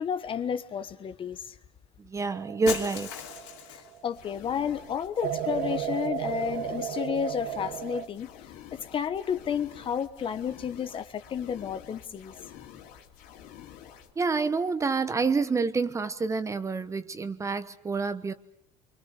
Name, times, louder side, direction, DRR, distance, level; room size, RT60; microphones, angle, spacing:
voice 1, 0.0-1.5 3.7-8.3 8.9-12.3, left 8 dB, 35° left, 1.3 m, -31 dB
voice 2, 2.0-3.1 14.2-18.3, right 4 dB, 20° right, 1.2 m, -28 dB
sound 1, 2.3-4.1 5.2-8.1, right 10 dB, 70° right, 1.5 m, -34 dB
Shatter, 2.7-4.0, left 10 dB, 90° left, 3.3 m, -37 dB
sound 2, 4.1-14.1, left 10 dB, 70° left, 3.1 m, -49 dB
27.5 x 24.5 x 6.7 m
supercardioid pair, 115°, 15 cm